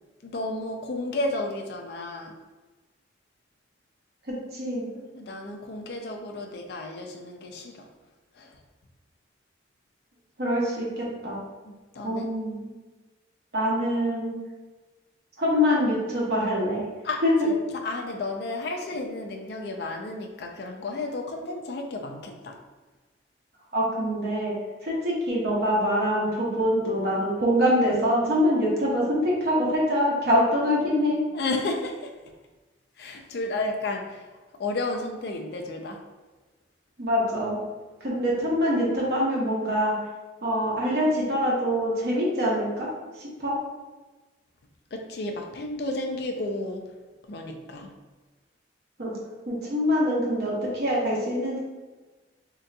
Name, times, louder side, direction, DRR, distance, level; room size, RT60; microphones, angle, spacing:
voice 1, 0.2-2.3 5.1-7.9 8.4-8.6 11.7-12.3 17.0-22.6 31.3-32.1 33.0-34.2 34.6-36.0 44.9-46.8 47.3-47.9, left 2 dB, 60° left, 3 dB, 0.4 m, -32 dB
voice 2, 4.5-4.9 10.4-11.3 12.0-12.7 13.5-14.3 15.4-16.9 17.2-17.5 23.7-24.5 24.8-31.2 37.0-37.6 38.0-39.9 40.4-42.9 43.2-43.6 49.0-49.1 49.5-51.6, equal, 55° right, -5 dB, 0.9 m, -24 dB
3.7 x 2.8 x 2.2 m, 1.2 s
head